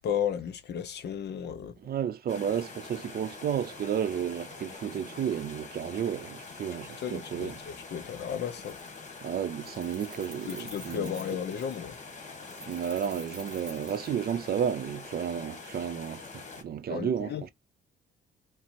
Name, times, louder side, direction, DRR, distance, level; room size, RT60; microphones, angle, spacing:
voice 1, 0.0-1.8 7.0-8.8 10.5-12.0 16.9-17.5, left 8 dB, 60° left, 0.8 m, -34 dB
voice 2, 1.8-7.5 9.2-11.1 12.6-17.3, right 8 dB, 50° right, 0.5 m, -32 dB
sound 1, 2.3-16.6, left 4 dB, 35° left, 1.2 m, -45 dB
Keys jangling, 8.0-8.1 8.4-9.2 9.5-11.9 12.4-14.7, right 1 dB, 5° right, 1.3 m, -48 dB
4.3 x 2.0 x 4.2 m
cardioid pair, 90°, 20 cm